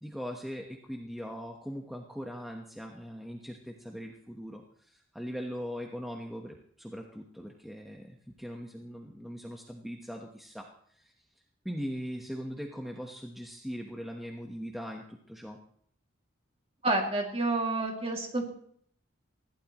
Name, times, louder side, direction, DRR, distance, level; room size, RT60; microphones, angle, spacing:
voice 1, 0.0-11.1 11.6-15.6, equal, ahead, 1 dB, 1.1 m, -40 dB
voice 2, 16.8-18.5, right 2 dB, 30° right, 1 dB, 2.4 m, -29 dB
20.5 x 16.0 x 3.1 m, 0.62 s
head